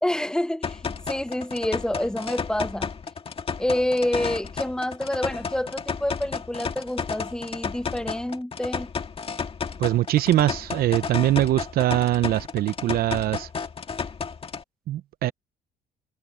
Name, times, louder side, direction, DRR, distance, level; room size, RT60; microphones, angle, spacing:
voice 1, 0.0-2.9 3.6-8.9, left 1 dB, 5° left, 0.8 m, -28 dB
sound 1, 0.6-14.6, left 5 dB, 35° left, 1.9 m, -32 dB
voice 2, 9.8-13.5 14.9-15.3, right 14 dB, 65° right, 0.8 m, -22 dB
cardioid pair, 110°, 17 cm